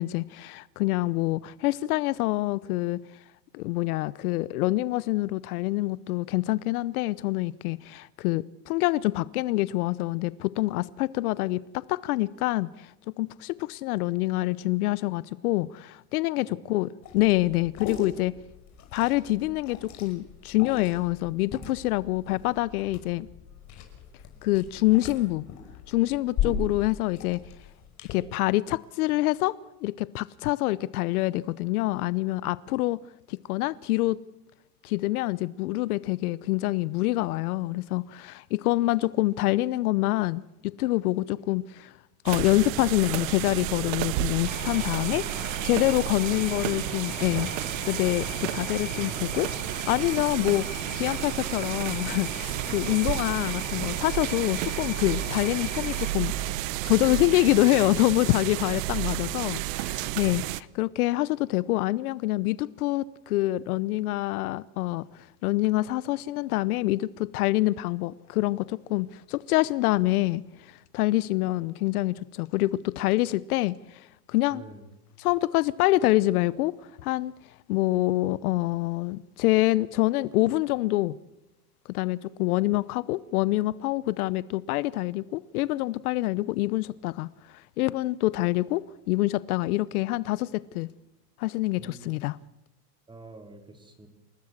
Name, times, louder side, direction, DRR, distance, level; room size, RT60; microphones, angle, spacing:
voice 1, 0.0-3.0 3.5-11.6 11.9-18.3 18.9-23.3 24.4-25.5 25.9-27.4 28.1-33.0 33.3-34.2 34.8-41.9 42.2-45.3 45.6-50.7 50.9-56.6 56.8-74.6 75.2-76.7 77.0-77.3 77.7-81.1 81.9-90.9 91.4-92.4, left 18 dB, 65° left, 0.9 m, -26 dB
Liquid, 17.0-28.1, left 7 dB, 35° left, 5.9 m, -38 dB
sound 1, 42.3-60.6, right 17 dB, 55° right, 1.0 m, -31 dB
sound 2, 44.4-56.1, left 6 dB, 20° left, 2.9 m, -40 dB
voice 2, 74.5-74.9 91.8-92.1 93.1-94.1, right 2 dB, 10° right, 3.7 m, -47 dB
28.5 x 18.0 x 7.4 m
supercardioid pair, 145°, 48 cm